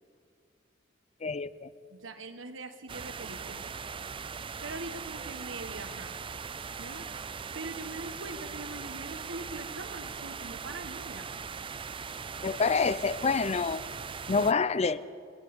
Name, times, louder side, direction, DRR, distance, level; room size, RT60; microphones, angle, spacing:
voice 1, 1.2-1.7 12.4-13.8 14.3-15.0, left 4 dB, 35° left, 17 dB, 0.5 m, -27 dB
voice 2, 1.9-3.7 4.6-6.1 6.8-7.1 7.5-11.3, right 2 dB, 85° right, 9 dB, 1.5 m, -42 dB
sound 1, 2.9-14.5, right 6 dB, 25° right, 0.5 m, -40 dB
28.0 x 11.0 x 9.7 m, 2.3 s
head